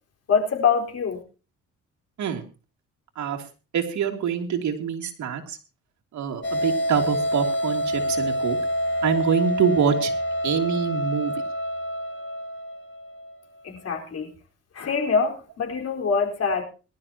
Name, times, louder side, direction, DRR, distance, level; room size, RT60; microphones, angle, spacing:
voice 1, 0.3-1.2 13.6-14.3 14.7-16.6, left 5 dB, 55° left, 2 dB, 4.5 m, -24 dB
voice 2, 3.7-5.6 6.1-8.6 9.0-10.1 10.4-11.3, right 7 dB, 70° right, 2 dB, 3.0 m, -25 dB
sound 1, 6.4-13.3, equal, 40° left, 3.1 m, -27 dB
22.0 x 12.5 x 2.9 m, 0.33 s
cardioid pair, 90°, 30 cm